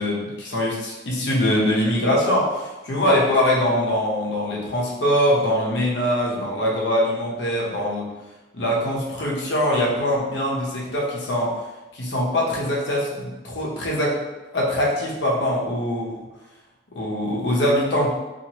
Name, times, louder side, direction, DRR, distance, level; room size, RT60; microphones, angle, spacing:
voice 1, 0.0-8.1 8.5-11.6 11.9-14.2 14.5-16.2 16.9-18.1, left 1 dB, 70° left, -3 dB, 0.7 m, -22 dB
2.7 x 2.4 x 2.9 m, 1.1 s
head